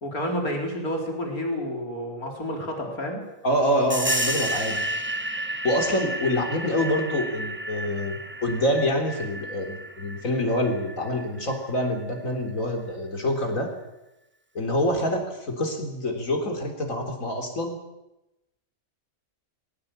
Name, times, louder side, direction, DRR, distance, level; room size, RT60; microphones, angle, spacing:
voice 1, 0.0-3.2, equal, 85° left, 1 dB, 4.6 m, -30 dB
voice 2, 3.4-4.9 5.6-13.7 14.5-17.8, left 1 dB, 65° left, 3 dB, 4.1 m, -26 dB
sound 1, 3.9-12.2, right 1 dB, 10° right, 1.0 m, -32 dB
21.0 x 17.0 x 8.8 m, 0.94 s
omnidirectional pair, 1.5 m